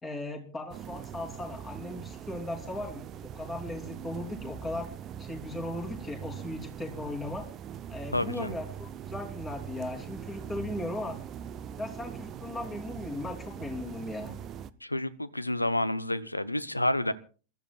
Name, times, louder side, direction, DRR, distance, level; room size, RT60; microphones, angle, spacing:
voice 1, 0.0-4.9 5.2-7.5 7.9-11.2 11.8-14.3, left 1 dB, 15° left, 2 dB, 3.2 m, -37 dB
sound 1, 0.7-14.7, right 9 dB, 30° right, 0.7 m, -42 dB
voice 2, 8.1-8.5 14.8-17.1, left 1 dB, 85° left, 16 dB, 0.7 m, -29 dB
27.5 x 13.5 x 2.4 m, 0.37 s
figure-of-eight pair, 90°, 0 cm